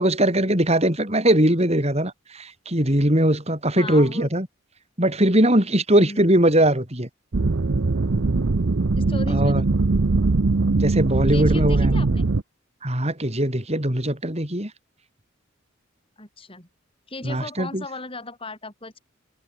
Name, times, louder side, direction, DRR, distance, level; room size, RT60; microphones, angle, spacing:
voice 1, 0.0-4.5 5.0-7.1 9.3-9.6 10.8-12.0 12.8-14.7 17.2-17.8, right 1 dB, 30° right, 5.9 m, -20 dB
voice 2, 3.7-4.3 5.9-6.3 9.0-9.7 11.3-12.2 16.2-16.7 17.1-19.0, left 2 dB, 25° left, 7.8 m, -36 dB
sound 1, 7.3-12.4, right 3 dB, 65° right, 0.7 m, -21 dB
head